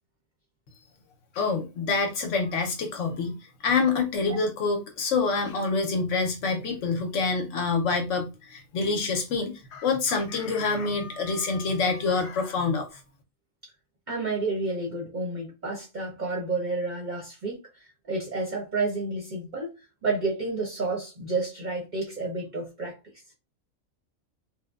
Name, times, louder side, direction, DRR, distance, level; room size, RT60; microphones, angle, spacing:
voice 1, 1.3-3.4 3.6-13.0, left 4 dB, 70° left, 0.8 m, -26 dB
Chicken rooster, 9.7-12.6, left 4 dB, 85° left, 0.4 m, -43 dB
voice 2, 14.1-19.7 20.0-23.0, right 3 dB, 45° right, 0.6 m, -30 dB
3.0 x 2.0 x 2.2 m
omnidirectional pair, 1.5 m